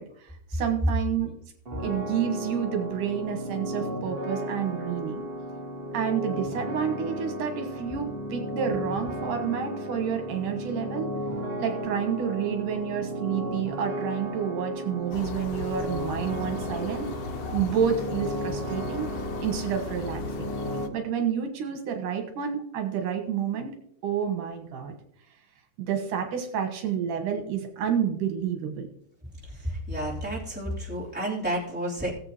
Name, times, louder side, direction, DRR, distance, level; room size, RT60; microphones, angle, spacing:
voice 1, 0.0-1.3 1.8-5.2 5.9-11.1 11.6-17.1 17.5-19.1 19.4-20.5 20.9-23.8 24.0-24.9 25.8-28.9, right 8 dB, 85° right, 4 dB, 2.9 m, -29 dB
sound 1, 1.6-20.9, equal, 30° right, 1.0 m, -34 dB
sound 2, 15.1-20.9, left 4 dB, 75° left, 2.4 m, -37 dB
voice 2, 29.6-32.1, right 1 dB, 5° right, -6 dB, 2.9 m, -31 dB
18.0 x 7.9 x 3.0 m, 0.68 s
omnidirectional pair, 3.6 m